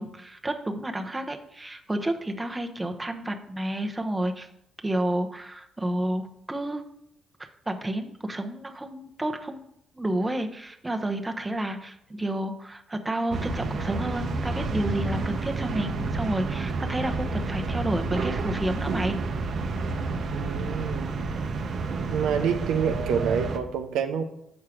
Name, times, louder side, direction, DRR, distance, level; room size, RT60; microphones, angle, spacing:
voice 1, 0.0-4.5 4.8-6.8 7.7-9.6 9.9-19.2, right 1 dB, 15° right, 5 dB, 0.8 m, -30 dB
sound 1, 13.3-23.6, right 3 dB, 60° right, 0.7 m, -30 dB
voice 2, 20.3-21.2 22.1-24.2, right 7 dB, 90° right, 6 dB, 0.7 m, -27 dB
7.2 x 4.6 x 5.0 m, 0.75 s
cardioid pair, 90°, 0 cm